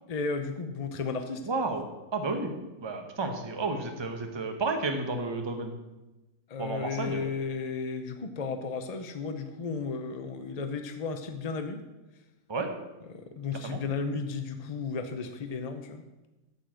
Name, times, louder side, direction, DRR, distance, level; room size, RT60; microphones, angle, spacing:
voice 1, 0.1-1.5 6.5-11.8 13.1-16.0, left 4 dB, 45° left, 6 dB, 0.5 m, -34 dB
voice 2, 1.4-1.8 2.1-2.5 2.8-5.7 6.6-7.3 12.5-12.7 13.6-13.8, right 3 dB, 20° right, 5 dB, 1.0 m, -31 dB
8.9 x 7.2 x 7.6 m, 1.0 s
omnidirectional pair, 1.8 m